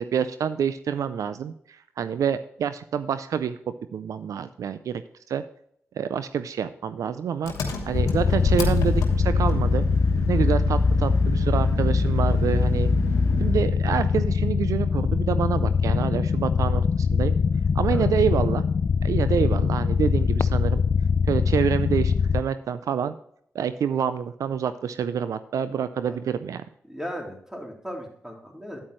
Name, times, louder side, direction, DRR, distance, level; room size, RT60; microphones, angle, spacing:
voice 1, 0.0-1.5 2.0-3.6 3.9-5.0 5.3-5.4 6.0-7.5 7.9-9.8 10.3-12.9 13.4-17.4 17.7-18.6 19.0-20.8 21.3-23.2 23.5-26.6, right 8 dB, 75° right, 12 dB, 0.4 m, -27 dB
Engine, 7.4-13.7, left 1 dB, 90° left, 1.2 m, -26 dB
sound 1, 7.9-22.4, left 6 dB, 50° left, 0.4 m, -23 dB
voice 2, 26.9-28.8, equal, 10° right, 0 dB, 3.5 m, -37 dB
9.4 x 8.7 x 3.1 m, 0.66 s
supercardioid pair, 40°, 6 cm